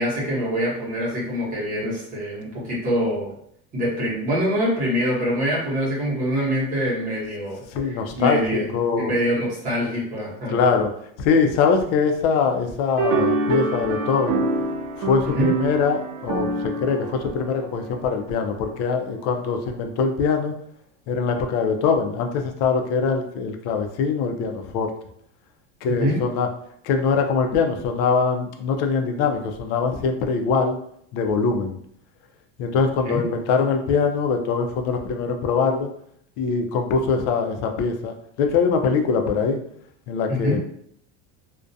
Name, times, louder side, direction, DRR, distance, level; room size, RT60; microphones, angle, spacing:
voice 1, 0.0-3.3 3.7-8.7 9.0-10.6 15.3-15.5 26.0-26.2 33.0-33.2 40.3-40.6, equal, 25° right, -6 dB, 0.9 m, -24 dB
voice 2, 7.7-9.1 10.5-10.9 11.2-14.4 15.0-20.5 21.1-24.9 25.8-26.5 26.8-30.8 31.1-31.8 32.6-35.9 36.4-39.6 40.1-40.6, left 5 dB, 50° left, 5 dB, 0.4 m, -22 dB
sound 1, 13.0-18.5, right 3 dB, 85° right, 0.5 m, -26 dB
2.3 x 2.1 x 2.6 m, 0.66 s
cardioid pair, 165°, 31 cm